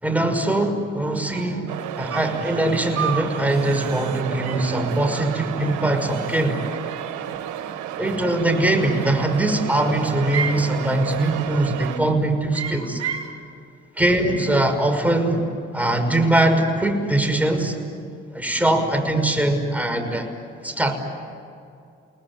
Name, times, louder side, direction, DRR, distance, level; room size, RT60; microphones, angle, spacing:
voice 1, 0.0-6.6 8.0-13.0 14.0-17.7 18.3-20.3 20.6-20.9, right 1 dB, 5° right, 4 dB, 5.8 m, -22 dB
sound 1, 1.0-1.1 1.3-1.7 2.1-2.5 3.0-3.3 3.7-4.0 4.4-4.8 5.6-6.4 6.7-7.4 8.6-9.3 9.7-10.7 11.2-11.5 11.8-12.1 12.5-13.3, right 8 dB, 60° right, 5.0 m, -33 dB
sound 2, 1.7-12.0, right 10 dB, 80° right, 1.5 m, -32 dB
29.5 x 20.0 x 9.8 m, 2.5 s
supercardioid pair, 50°, 29 cm